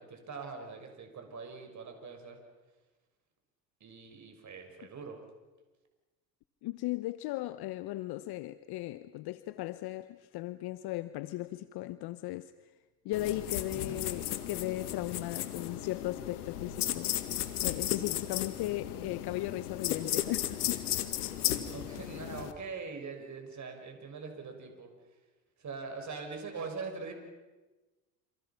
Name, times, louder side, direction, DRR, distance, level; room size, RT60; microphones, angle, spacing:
voice 1, 0.0-2.4 3.8-5.2 13.8-14.1 21.7-24.9 25.6-27.2, right 4 dB, 40° right, 5.9 m, -42 dB
voice 2, 6.6-12.5 13.0-17.3 17.6-20.9 21.2-21.4, left 16 dB, 55° left, 1.0 m, -37 dB
sound 1, 13.1-22.5, left 12 dB, 85° left, 1.9 m, -35 dB
28.5 x 28.0 x 5.9 m
hypercardioid pair, 75°, 44 cm